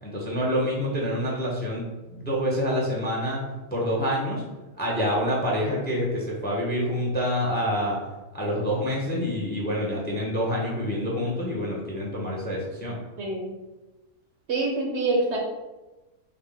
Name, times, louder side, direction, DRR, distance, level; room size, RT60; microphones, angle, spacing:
voice 1, 0.0-3.4 3.7-4.4 4.8-8.0 8.3-13.0, equal, 10° left, -3 dB, 0.6 m, -27 dB
voice 2, 13.2-13.5 14.5-15.4, right 2 dB, 60° right, -1 dB, 0.9 m, -25 dB
5.1 x 2.4 x 3.4 m, 1.1 s
omnidirectional pair, 1.4 m